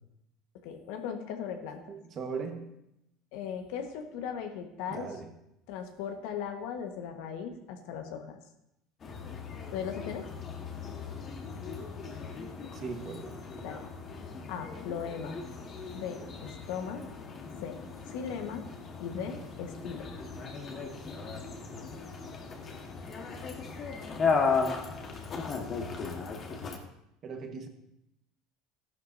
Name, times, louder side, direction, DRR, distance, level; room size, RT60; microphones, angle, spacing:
voice 1, 0.6-1.8 3.3-5.1 5.7-8.4 9.7-10.3 13.6-13.9 14.5-15.4 15.9-17.0 17.6-18.6 19.0-20.1, left 7 dB, 75° left, 5 dB, 1.5 m, -38 dB
voice 2, 1.9-2.7 4.9-5.3 12.7-13.4 25.5-25.6 27.2-27.7, right 5 dB, 40° right, 4 dB, 1.5 m, -39 dB
sound 1, 9.0-26.8, left 5 dB, 35° left, 1.6 m, -36 dB
13.5 x 11.5 x 2.8 m, 0.84 s
supercardioid pair, 125°, 0 cm